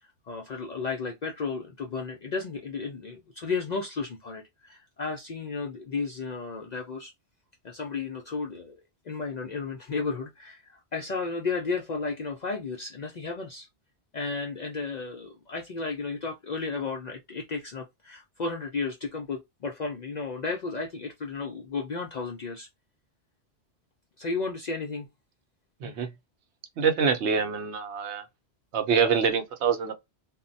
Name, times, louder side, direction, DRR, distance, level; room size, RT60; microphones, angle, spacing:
voice 1, 0.3-7.1 7.6-8.8 9.1-13.7 14.1-22.7 24.2-25.1, left 4 dB, 60° left, 0.4 m, -33 dB
voice 2, 25.8-26.1 26.8-28.3 28.7-29.9, right 6 dB, 75° right, 0.9 m, -25 dB
2.2 x 2.1 x 3.8 m
omnidirectional pair, 1.2 m